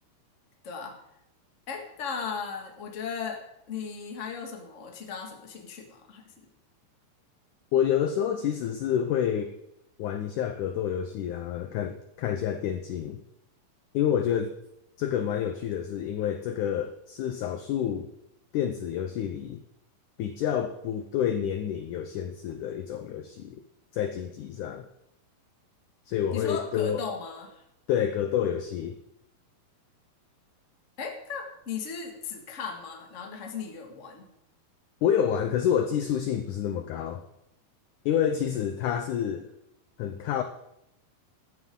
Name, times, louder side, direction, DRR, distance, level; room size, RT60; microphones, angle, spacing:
voice 1, 1.7-6.2 26.3-27.5 31.0-34.2, left 6 dB, 30° left, 2 dB, 1.4 m, -37 dB
voice 2, 7.7-9.5 10.0-13.2 13.9-14.5 15.0-18.1 18.5-19.6 20.2-23.6 23.9-24.9 26.1-27.0 27.9-29.0 35.0-37.2 38.1-39.5 40.0-40.4, left 9 dB, 75° left, 8 dB, 1.9 m, -28 dB
15.5 x 13.0 x 3.8 m, 0.82 s
omnidirectional pair, 4.4 m